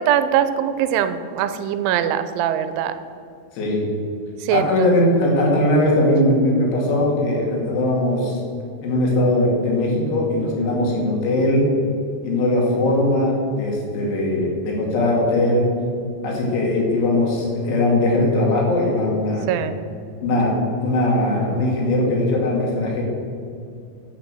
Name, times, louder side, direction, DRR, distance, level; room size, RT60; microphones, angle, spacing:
voice 1, 0.0-2.9 4.5-4.7 19.5-19.7, right 10 dB, 90° right, 11 dB, 3.0 m, -21 dB
voice 2, 4.5-8.4 8.8-11.6 12.2-15.7 16.2-19.5 20.2-23.0, left 1 dB, 80° left, -3 dB, 4.7 m, -20 dB
10.0 x 7.2 x 7.7 m, 2.4 s
omnidirectional pair, 5.4 m